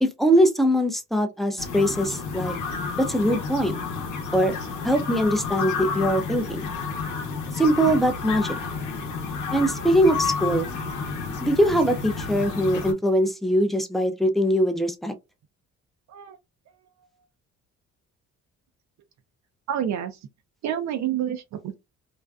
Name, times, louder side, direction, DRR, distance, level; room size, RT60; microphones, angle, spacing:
voice 1, 0.0-2.6 3.0-3.8 4.3-4.5 4.8-6.6 7.6-8.6 9.5-10.7 11.4-15.1, equal, ahead, 0.4 m, -22 dB
sound 1, 1.6-12.9, left 5 dB, 80° left, 0.8 m, -30 dB
voice 2, 19.7-20.2 20.6-21.7, right 10 dB, 65° right, 0.5 m, -28 dB
2.5 x 2.2 x 2.3 m
cardioid pair, 90°, 30 cm